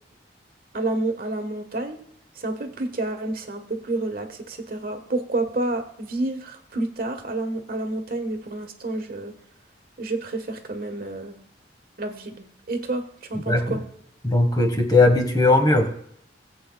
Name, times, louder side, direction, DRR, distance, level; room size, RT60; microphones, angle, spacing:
voice 1, 0.7-2.0 2.4-9.3 10.0-11.3 12.0-13.8, right 2 dB, 50° right, 6 dB, 1.4 m, -29 dB
voice 2, 13.5-13.8 14.2-15.9, left 2 dB, 20° left, 5 dB, 1.4 m, -18 dB
19.5 x 8.2 x 2.3 m, 0.69 s
head